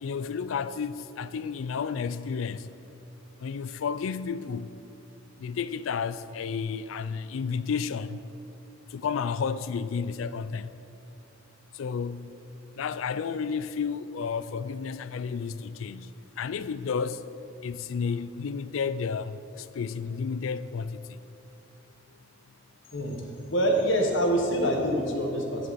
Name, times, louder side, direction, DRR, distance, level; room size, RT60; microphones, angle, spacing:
voice 1, 0.0-2.7 3.4-4.7 5.4-8.2 8.9-10.7 11.7-12.3 12.8-16.1 16.4-17.2 17.6-21.2, left 6 dB, 85° left, 0.4 m, -32 dB
voice 2, 23.5-25.7, equal, 65° left, 1.4 m, -25 dB
15.0 x 7.7 x 4.2 m
head